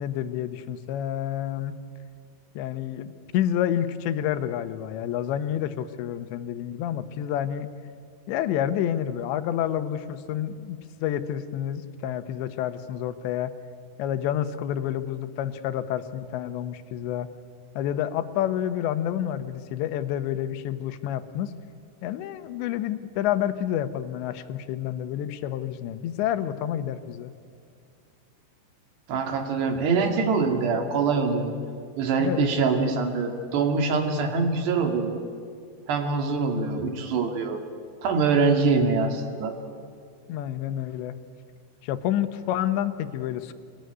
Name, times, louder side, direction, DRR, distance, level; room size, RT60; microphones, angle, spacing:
voice 1, 0.0-1.7 2.5-7.7 8.3-13.5 14.0-17.3 17.8-21.5 22.0-27.3 32.2-32.5 40.3-41.2 41.8-43.5, left 11 dB, 80° left, 11 dB, 3.3 m, -29 dB
voice 2, 29.1-31.5 32.0-35.2 35.9-37.6 38.0-39.5, right 4 dB, 70° right, 5 dB, 4.4 m, -24 dB
25.5 x 19.5 x 9.4 m, 2.3 s
omnidirectional pair, 5.1 m